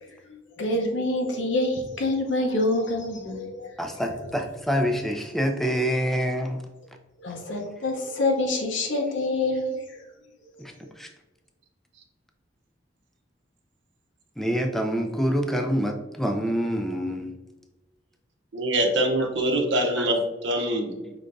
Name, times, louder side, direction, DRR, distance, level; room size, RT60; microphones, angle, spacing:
voice 1, 0.0-3.7 7.2-9.8, left 2 dB, 80° left, 2 dB, 0.8 m, -26 dB
voice 2, 3.8-6.6 10.6-11.1 14.4-17.3 19.2-19.3 20.0-20.1 21.0-21.1, equal, ahead, 4 dB, 0.4 m, -26 dB
voice 3, 18.5-20.9, right 1 dB, 70° right, 3 dB, 0.8 m, -24 dB
5.1 x 3.4 x 2.6 m, 1.1 s
head